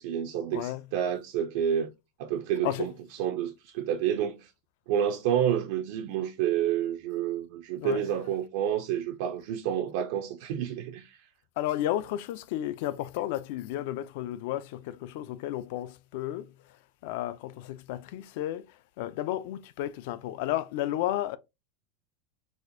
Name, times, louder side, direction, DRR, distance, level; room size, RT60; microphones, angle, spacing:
voice 1, 0.0-1.9 2.2-2.9 3.2-4.5 4.9-11.3, right 9 dB, 55° right, 0.4 m, -29 dB
voice 2, 11.6-16.5 17.0-21.4, left 13 dB, 55° left, 0.3 m, -32 dB
4.1 x 2.4 x 2.5 m
supercardioid pair, 175°, 0 cm